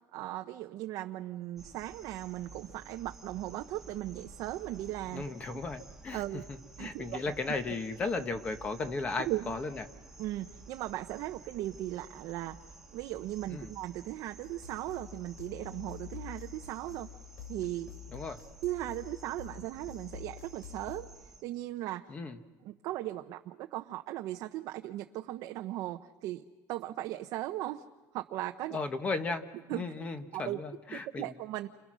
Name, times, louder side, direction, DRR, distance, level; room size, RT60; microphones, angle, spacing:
voice 1, 0.1-5.2 6.1-6.4 6.8-7.2 9.3-9.5 10.2-12.6 12.9-17.1 17.5-17.9 18.6-21.1 21.4-22.1 22.6-26.4 26.7-27.8 28.1-28.8 29.7-29.8 30.3-30.6 30.9-31.7, right 15 dB, 50° right, 5 dB, 0.8 m, -37 dB
sound 1, 1.6-21.4, right 4 dB, 5° right, 1.4 m, -53 dB
voice 2, 5.1-6.2 6.5-9.8 13.5-13.7 18.1-18.4 22.1-22.4 28.7-29.4 29.7-31.3, left 3 dB, 20° left, 9 dB, 1.2 m, -35 dB
sound 2, 14.4-21.0, left 8 dB, 75° left, 3.1 m, -48 dB
29.5 x 26.5 x 6.3 m, 1.2 s
cardioid pair, 175°, 7 cm